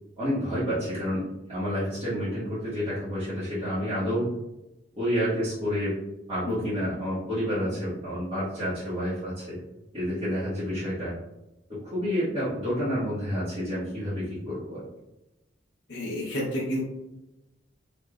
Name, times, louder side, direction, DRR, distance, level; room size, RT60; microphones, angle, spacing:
voice 1, 0.2-4.3 5.0-5.9 6.3-9.6 9.9-11.1 11.8-14.8, equal, 30° right, -15 dB, 1.3 m, -29 dB
voice 2, 15.9-16.8, equal, 70° left, -6 dB, 0.9 m, -30 dB
3.3 x 3.1 x 2.4 m, 0.94 s
head